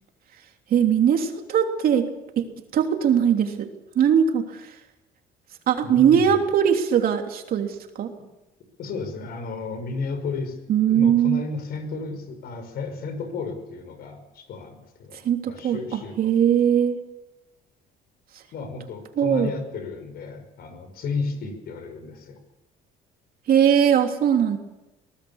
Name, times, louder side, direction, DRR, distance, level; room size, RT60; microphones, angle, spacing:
voice 1, 0.7-2.1 2.4-2.5 2.7-3.7 3.9-4.8 5.7-8.1 10.7-11.4 15.2-17.0 19.2-19.5 23.5-24.6, right 8 dB, 60° right, 4 dB, 3.1 m, -20 dB
voice 2, 5.8-6.4 8.8-10.6 10.9-15.2 15.5-16.3 18.5-22.4, left 4 dB, 65° left, 8 dB, 5.8 m, -33 dB
23.5 x 18.5 x 7.2 m, 1.0 s
cardioid pair, 110°, 17 cm